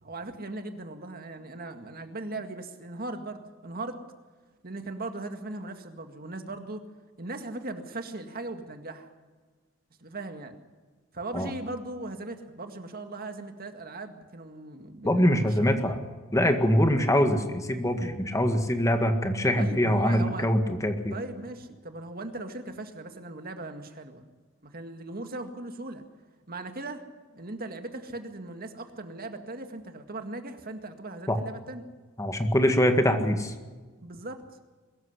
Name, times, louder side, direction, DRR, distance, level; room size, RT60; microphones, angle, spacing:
voice 1, 0.0-4.0 4.6-6.8 7.2-9.1 10.0-10.6 11.1-16.0 19.6-20.5 21.1-24.3 24.6-26.0 26.5-27.0 27.3-31.9 34.0-34.4, right 2 dB, 45° right, 6 dB, 2.0 m, -38 dB
voice 2, 15.0-16.0 16.3-21.1 31.3-31.4 32.2-33.5, equal, 15° left, 6 dB, 1.8 m, -23 dB
22.5 x 14.0 x 9.8 m, 1.3 s
head